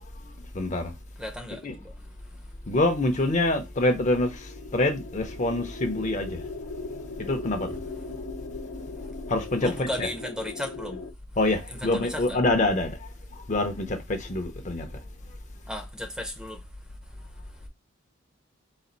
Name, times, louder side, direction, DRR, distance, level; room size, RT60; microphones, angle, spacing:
voice 1, 0.5-0.9 1.6-1.8 2.7-6.4 7.2-7.7 9.3-10.1 11.4-13.0 13.5-14.9, left 2 dB, 35° left, 0.7 m, -26 dB
voice 2, 1.2-1.9 9.6-11.0 11.7-12.4 15.7-16.6, left 1 dB, 5° right, 0.6 m, -35 dB
sound 1, 4.0-11.1, left 3 dB, 85° left, 0.8 m, -39 dB
4.1 x 2.5 x 3.9 m
head